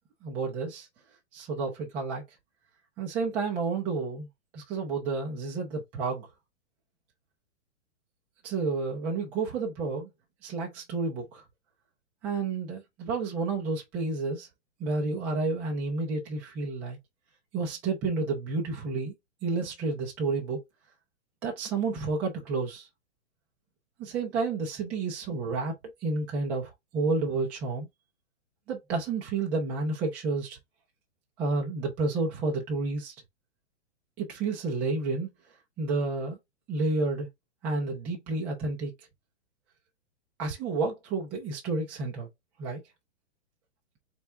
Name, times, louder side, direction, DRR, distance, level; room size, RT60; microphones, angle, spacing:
voice 1, 0.2-0.9 1.3-2.2 3.0-4.3 4.5-6.3 8.4-10.1 10.4-11.4 12.2-14.5 14.8-17.0 17.5-19.1 19.4-20.6 21.4-22.9 24.0-25.7 26.0-27.9 28.7-30.6 31.4-33.1 34.2-35.3 35.8-36.4 36.7-37.3 37.6-38.9 40.4-42.3 42.6-42.8, right 3 dB, 5° right, 0.4 m, -30 dB
4.2 x 3.3 x 3.5 m
hypercardioid pair, 160°, 35 cm